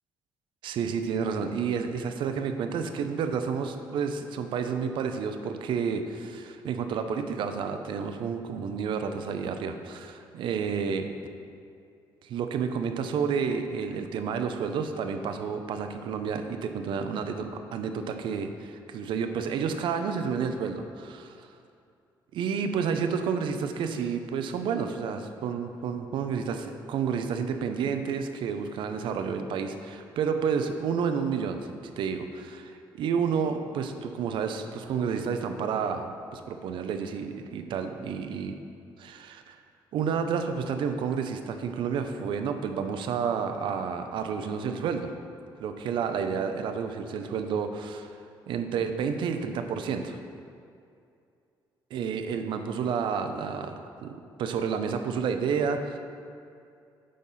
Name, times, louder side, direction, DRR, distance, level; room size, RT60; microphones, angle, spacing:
voice 1, 0.6-11.1 12.2-21.5 22.3-38.6 39.0-39.6 39.9-45.1 45.6-48.2 48.5-50.2 51.9-56.0, right 6 dB, 75° right, 7 dB, 0.6 m, -30 dB
8.6 x 4.1 x 5.6 m, 2.5 s
cardioid pair, 115°, 8 cm